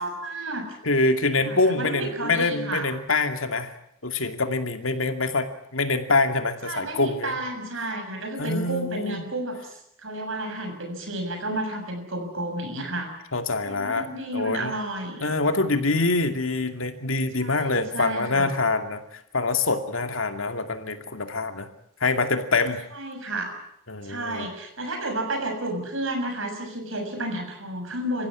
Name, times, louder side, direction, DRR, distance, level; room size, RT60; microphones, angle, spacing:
voice 1, 0.0-0.8 1.4-2.9 6.6-13.1 13.6-15.3 17.4-18.5 22.9-23.5 24.0-28.3, right 1 dB, 70° right, 5 dB, 6.7 m, -31 dB
voice 2, 0.8-3.7 4.0-7.3 8.4-9.2 13.3-14.7 15.2-21.7 22.0-22.8 23.9-24.5, left 3 dB, 75° left, 7 dB, 2.5 m, -25 dB
27.0 x 15.5 x 9.7 m, 0.76 s
head